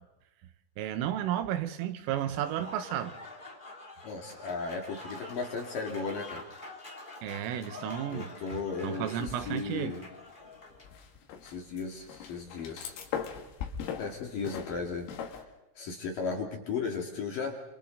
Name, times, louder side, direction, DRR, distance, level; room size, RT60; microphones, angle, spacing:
voice 1, 0.8-3.2 7.2-8.3 8.8-10.0, right 11 dB, 80° right, 3.7 m, -33 dB
Applause / Crowd, 2.2-11.0, left 2 dB, 15° left, 1.6 m, -46 dB
voice 2, 4.0-6.4 8.1-10.1 11.4-12.9 14.0-15.5 15.7-17.6, left 4 dB, 50° left, 3.2 m, -36 dB
sound 1, 9.3-10.0 10.3-15.4, left 8 dB, 80° left, 4.8 m, -40 dB
28.5 x 27.5 x 4.0 m
omnidirectional pair, 6.0 m